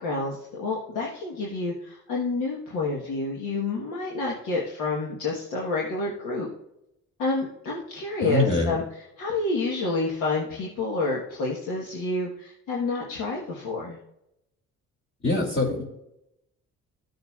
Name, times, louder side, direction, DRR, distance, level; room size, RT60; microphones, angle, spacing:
voice 1, 0.0-6.5 7.2-14.0, left 3 dB, 90° left, -3 dB, 1.4 m, -29 dB
voice 2, 8.2-8.7 15.2-15.8, left 3 dB, 40° left, -4 dB, 2.3 m, -24 dB
14.0 x 6.6 x 2.4 m, 0.82 s
cardioid pair, 90°, 30 cm